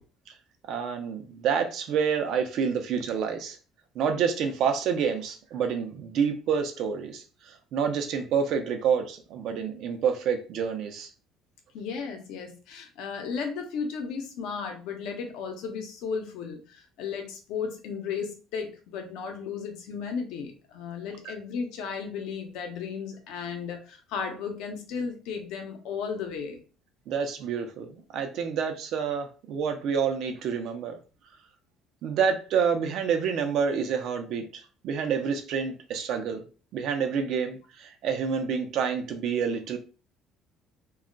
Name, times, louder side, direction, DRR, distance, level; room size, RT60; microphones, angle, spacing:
voice 1, 0.7-3.6 3.9-11.1 21.2-21.3 27.1-31.0 32.0-36.4 36.7-39.8, right 6 dB, 65° right, 0.6 m, -28 dB
voice 2, 11.7-26.6, left 6 dB, 75° left, 0.7 m, -35 dB
2.3 x 2.2 x 3.7 m
cardioid pair, 115°, 0 cm